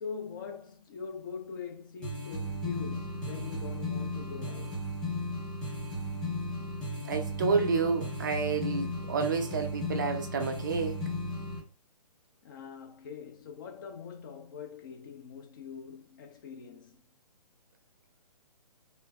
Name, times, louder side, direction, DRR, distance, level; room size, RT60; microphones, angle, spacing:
voice 1, 0.0-4.8 12.4-17.0, left 6 dB, 30° left, 0.6 m, -43 dB
sound 1, 2.0-11.6, left 1 dB, 5° left, 1.1 m, -35 dB
voice 2, 7.0-11.0, right 5 dB, 30° right, 0.4 m, -30 dB
3.2 x 3.2 x 2.2 m
figure-of-eight pair, 130°, 20 cm